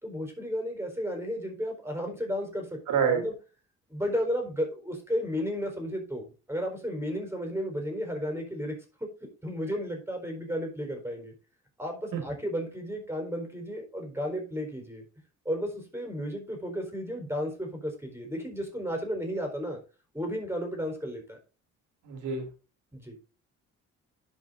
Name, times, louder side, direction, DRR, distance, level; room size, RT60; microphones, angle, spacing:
voice 1, 0.0-2.7 2.9-3.3 3.9-8.7 9.2-11.3 11.8-15.0 15.4-19.8 20.1-21.4 22.9-23.2, equal, 10° right, 3 dB, 4.3 m, -33 dB
voice 2, 2.9-3.2 12.1-12.2 22.0-22.5, right 6 dB, 85° right, 5 dB, 3.2 m, -26 dB
11.0 x 5.4 x 3.9 m, 0.33 s
cardioid pair, 90°, 30 cm